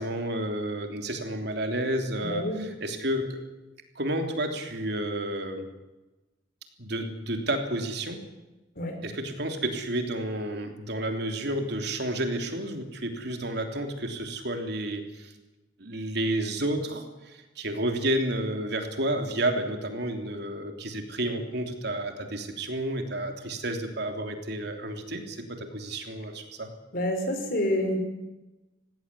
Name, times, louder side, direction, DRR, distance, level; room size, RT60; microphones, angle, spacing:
voice 1, 0.0-3.4 3.9-5.7 6.8-8.2 9.0-15.3 15.8-26.7, right 1 dB, 65° right, 5 dB, 3.2 m, -31 dB
voice 2, 2.2-2.6 8.8-9.0 26.9-28.0, left 1 dB, 55° left, 5 dB, 4.9 m, -28 dB
19.0 x 17.0 x 9.9 m, 1.1 s
head